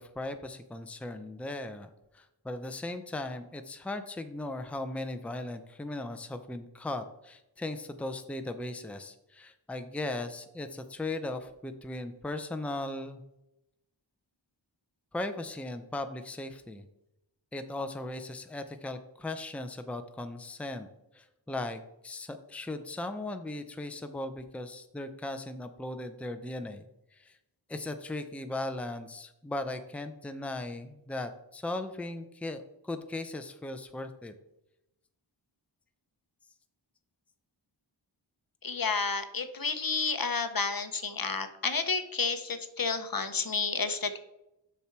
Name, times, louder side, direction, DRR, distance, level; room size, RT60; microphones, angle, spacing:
voice 1, 0.0-13.2 15.1-16.9 17.5-20.9 21.1-27.4 27.7-34.3, left 2 dB, 5° left, 8 dB, 0.6 m, -38 dB
voice 2, 38.6-44.2, left 4 dB, 50° left, 10 dB, 0.8 m, -31 dB
7.0 x 6.0 x 4.5 m, 0.88 s
wide cardioid pair, 45°, 46 cm